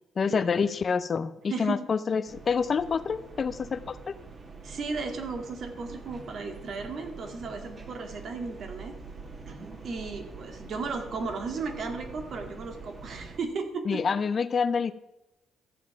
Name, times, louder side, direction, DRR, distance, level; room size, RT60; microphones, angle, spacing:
voice 1, 0.2-1.3 1.6-4.1 13.9-14.9, left 5 dB, 45° left, 14 dB, 0.7 m, -27 dB
sound 1, 2.3-13.4, right 4 dB, 40° right, 2.1 m, -45 dB
voice 2, 4.6-9.0 9.5-14.1, right 4 dB, 60° right, 4 dB, 2.0 m, -35 dB
14.0 x 7.3 x 5.9 m, 0.91 s
cardioid pair, 90°, 0 cm